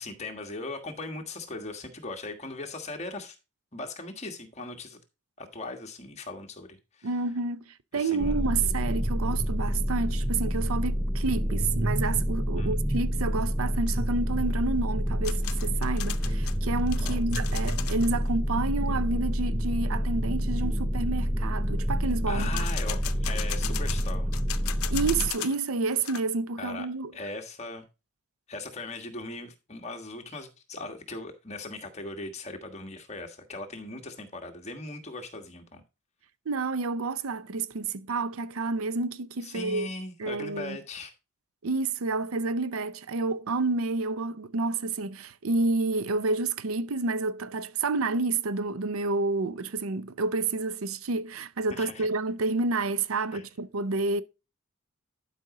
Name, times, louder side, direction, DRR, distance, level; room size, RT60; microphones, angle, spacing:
voice 1, 0.0-3.4 3.7-5.0 5.4-7.1 7.9-8.5 12.5-12.8 17.0-17.2 22.3-24.3 26.6-26.9 27.1-27.8 28.5-35.8 39.4-41.1 51.7-52.1 53.3-53.4, left 2 dB, 30° left, 1.4 m, -39 dB
voice 2, 7.0-22.7 24.9-27.1 36.5-39.9 40.2-40.8 41.6-54.2, right 3 dB, 75° right, 0.6 m, -29 dB
sound 1, 8.2-25.3, equal, 10° right, 0.5 m, -28 dB
sound 2, 15.2-18.1 22.4-25.6 25.9-26.2, left 13 dB, 90° left, 0.6 m, -37 dB
11.5 x 5.2 x 3.7 m
head